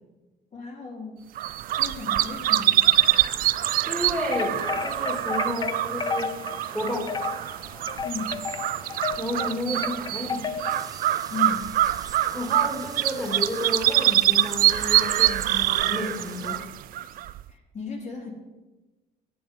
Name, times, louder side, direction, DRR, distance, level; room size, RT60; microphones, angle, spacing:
voice 1, 0.5-2.9 8.0-8.4 11.3-11.7 17.5-18.3, left 4 dB, 45° left, -1 dB, 2.4 m, -36 dB
sound 1, 1.4-17.4, right 13 dB, 60° right, 0.4 m, -25 dB
voice 2, 3.9-6.4 6.7-7.2 9.2-10.5 12.3-16.6, left 1 dB, 5° left, -1 dB, 2.0 m, -31 dB
sound 2, 4.3-10.9, left 6 dB, 25° left, 0.5 m, -32 dB
sound 3, 10.7-16.6, right 4 dB, 20° right, 0.7 m, -45 dB
8.8 x 7.1 x 5.1 m, 1.2 s
cardioid pair, 110°, 17 cm